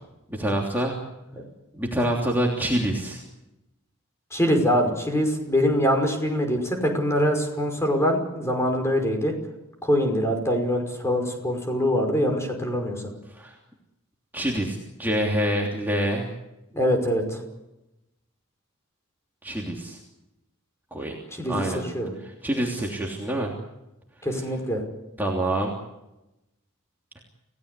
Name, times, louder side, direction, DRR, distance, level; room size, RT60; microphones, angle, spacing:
voice 1, 0.3-1.0 1.7-3.2 13.3-13.5 14.3-16.3 19.4-20.0 20.9-21.2 21.5-21.8 22.2-23.5 25.2-25.7, right 1 dB, 10° right, -2 dB, 3.1 m, -26 dB
voice 2, 4.3-9.3 9.8-13.0 16.7-17.4 21.4-21.7 21.9-22.1 24.2-24.8, equal, 10° left, 4 dB, 5.5 m, -23 dB
29.0 x 17.5 x 8.4 m, 0.94 s
head